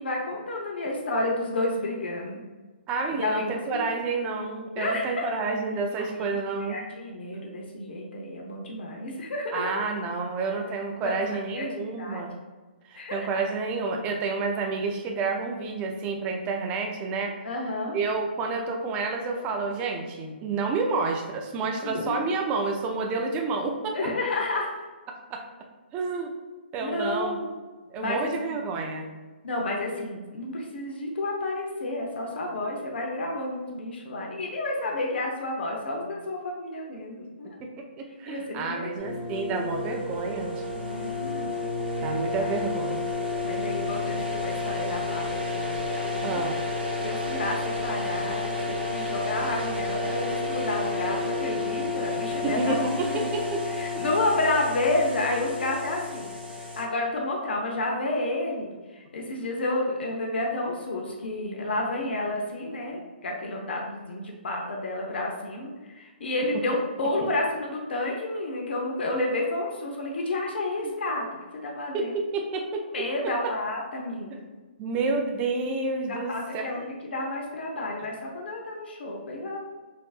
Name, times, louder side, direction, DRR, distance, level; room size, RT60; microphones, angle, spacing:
voice 1, 0.0-2.4 3.1-3.8 4.8-5.3 6.2-9.7 11.0-12.3 12.9-13.3 17.4-17.9 21.8-22.3 23.9-24.7 26.8-27.5 28.0-28.6 29.4-37.5 38.3-38.9 40.8-41.5 42.0-42.5 43.4-46.4 47.0-52.7 53.0-53.2 53.8-71.3 71.6-72.1 72.9-74.4 76.3-79.6, left 2 dB, 70° left, 0 dB, 0.7 m, -30 dB
voice 2, 2.9-6.8 9.5-12.3 12.9-17.3 17.9-24.0 25.3-25.4 25.9-26.3 26.7-27.4 27.9-29.1 37.6-37.7 38.0-40.6 42.0-43.1 46.2-46.6 52.4-53.6 66.7-66.8 70.8-70.9 71.9-72.8 73.2-73.3 74.3-74.4 74.8-76.9, right 4 dB, 20° right, 2 dB, 0.5 m, -29 dB
sound 1, 39.0-56.8, left 3 dB, 80° right, 1.3 m, -31 dB
4.5 x 2.6 x 2.4 m, 1.3 s
hypercardioid pair, 150°, 6 cm